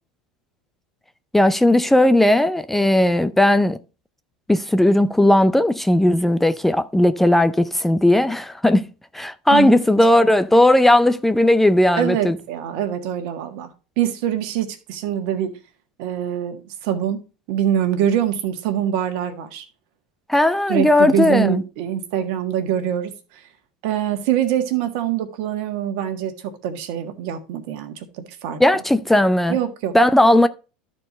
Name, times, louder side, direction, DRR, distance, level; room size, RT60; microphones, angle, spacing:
voice 1, 1.3-3.8 4.5-8.9 9.1-12.4 20.3-21.6 28.6-29.6 29.9-30.5, left 1 dB, 5° left, 0.4 m, -16 dB
voice 2, 11.9-13.7 14.0-15.5 16.0-19.6 20.7-23.1 23.8-28.6 29.5-29.9, right 10 dB, 65° right, 1.6 m, -24 dB
12.5 x 4.5 x 4.2 m
hypercardioid pair, 95°, 4 cm